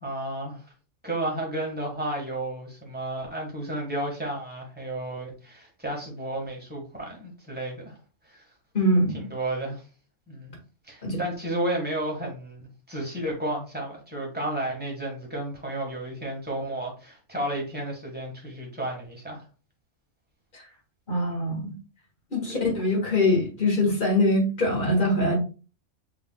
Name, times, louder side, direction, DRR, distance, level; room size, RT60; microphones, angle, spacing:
voice 1, 0.0-0.6 1.0-8.0 8.2-8.4 9.1-9.8 10.3-10.5 10.8-19.4 22.5-22.6, right 1 dB, 10° right, 1.4 m, -32 dB
voice 2, 8.7-9.2 11.0-11.2 21.1-21.7 22.3-25.4, left 1 dB, 40° left, 1.8 m, -23 dB
6.0 x 3.3 x 2.2 m
omnidirectional pair, 1.3 m